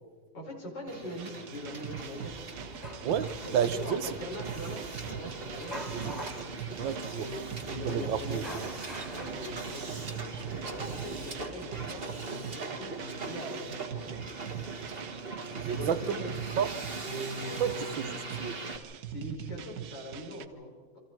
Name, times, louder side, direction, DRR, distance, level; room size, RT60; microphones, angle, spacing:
voice 1, 0.3-2.7 3.5-6.2 7.1-8.7 9.0-14.0 15.7-16.3 17.0-18.1 19.1-21.0, left 1 dB, 65° left, 5.7 m, -42 dB
Hiss, 0.9-18.8, right 4 dB, 30° right, 1.7 m, -40 dB
sound 1, 1.2-20.5, right 10 dB, 60° right, 1.3 m, -43 dB
sound 2, 2.2-12.0, equal, 15° right, 2.8 m, -47 dB
voice 2, 3.0-4.2 5.9-6.1 6.8-7.3 7.8-8.6 15.6-16.7 17.6-18.1 18.4-18.6, right 8 dB, 75° right, 1.6 m, -31 dB
28.0 x 25.5 x 4.6 m
omnidirectional pair, 2.1 m